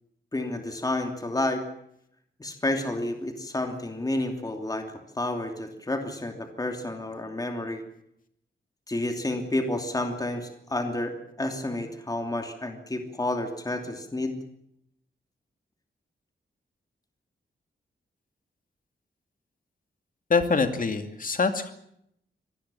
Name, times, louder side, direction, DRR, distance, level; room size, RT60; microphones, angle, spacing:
voice 1, 0.3-1.6 2.4-7.8 8.9-14.4, left 1 dB, 20° left, 5 dB, 2.9 m, -30 dB
voice 2, 20.3-21.7, left 4 dB, 45° left, 7 dB, 2.6 m, -24 dB
25.5 x 19.5 x 7.1 m, 0.74 s
wide cardioid pair, 150°, 19 cm